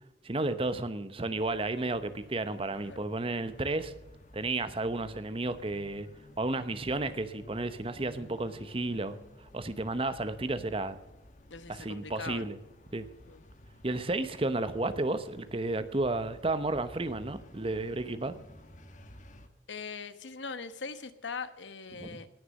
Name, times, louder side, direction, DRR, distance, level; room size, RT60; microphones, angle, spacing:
voice 1, 0.2-3.9 4.3-6.1 6.4-9.2 9.5-11.0 11.7-12.6 12.9-13.1 13.8-18.3 22.0-22.2, right 2 dB, 30° right, 12 dB, 0.9 m, -32 dB
sound 1, 1.3-19.5, left 1 dB, 40° left, 1.3 m, -53 dB
voice 2, 11.5-12.5 13.3-13.4 19.7-22.3, left 5 dB, 85° left, 12 dB, 1.1 m, -41 dB
18.5 x 6.7 x 6.4 m, 0.99 s
head